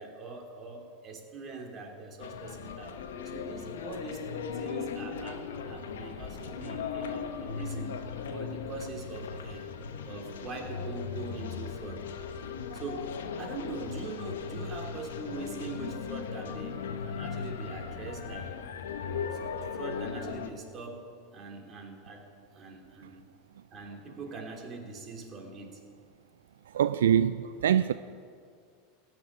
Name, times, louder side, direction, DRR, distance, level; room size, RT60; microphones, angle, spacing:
voice 1, 0.0-9.7 10.0-12.1 12.7-18.6 19.3-19.4 19.7-22.3 22.5-23.2 23.7-25.8, right 3 dB, 35° right, 3.1 m, -42 dB
sound 1, 2.2-20.5, left 6 dB, 80° left, 1.1 m, -38 dB
voice 2, 26.7-27.9, right 9 dB, 80° right, 0.3 m, -24 dB
16.0 x 6.3 x 9.7 m
hypercardioid pair, 100°, 0 cm